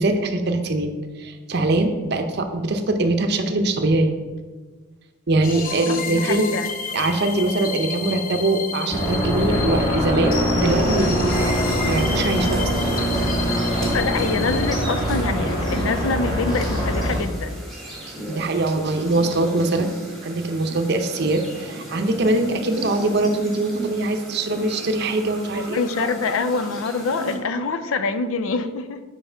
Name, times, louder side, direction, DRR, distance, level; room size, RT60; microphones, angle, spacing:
voice 1, 0.0-4.1 5.3-6.5 6.9-12.9 18.3-19.9 20.2-26.1, right 2 dB, 50° right, 6 dB, 0.7 m, -22 dB
sound 1, 5.4-14.7, left 5 dB, 40° left, 0.8 m, -31 dB
voice 2, 5.7-6.7 13.8-17.6 25.5-29.0, left 4 dB, 75° left, 11 dB, 0.5 m, -25 dB
sound 2, 8.9-17.2, equal, 25° left, 1.6 m, -23 dB
sound 3, 11.6-27.4, right 1 dB, ahead, 1.4 m, -36 dB
5.7 x 4.7 x 5.5 m, 1.3 s
head